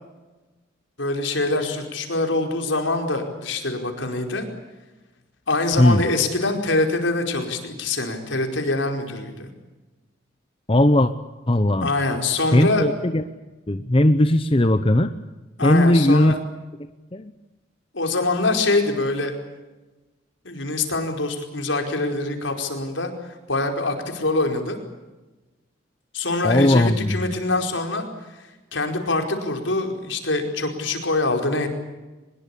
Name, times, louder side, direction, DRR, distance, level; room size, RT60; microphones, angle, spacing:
voice 1, 1.0-4.4 5.5-9.5 11.8-12.8 15.6-16.4 17.9-19.3 20.4-23.1 23.5-24.8 26.1-28.1 28.4-31.7, left 2 dB, 70° left, 4 dB, 4.9 m, -24 dB
voice 2, 10.7-11.1 11.5-11.9 12.5-13.2 13.7-15.1 15.6-16.4 17.1-17.3 26.4-27.2, left 1 dB, 30° left, 10 dB, 0.9 m, -17 dB
24.0 x 21.5 x 8.5 m, 1.1 s
head